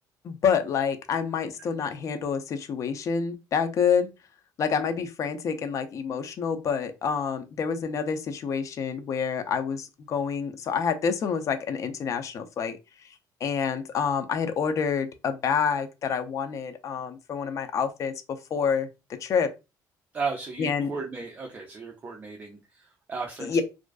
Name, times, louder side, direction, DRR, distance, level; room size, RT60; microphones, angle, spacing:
voice 1, 0.2-4.1 4.6-12.8 13.4-18.1 18.5-19.5 20.6-20.9 23.4-23.6, left 6 dB, 45° left, 0.4 m, -27 dB
voice 2, 20.1-23.6, right 4 dB, 25° right, 0.4 m, -35 dB
2.4 x 2.2 x 2.3 m
cardioid pair, 125°, 8 cm